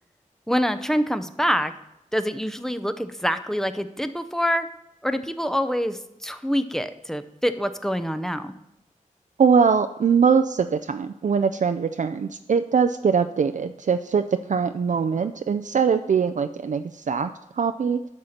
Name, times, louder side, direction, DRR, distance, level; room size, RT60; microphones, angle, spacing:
voice 1, 0.5-1.7 2.1-4.7 5.0-8.5, equal, 5° left, 11 dB, 0.6 m, -25 dB
voice 2, 9.4-18.0, right 6 dB, 65° right, 9 dB, 0.4 m, -22 dB
11.0 x 4.3 x 6.5 m, 0.84 s
wide cardioid pair, 90°, 14 cm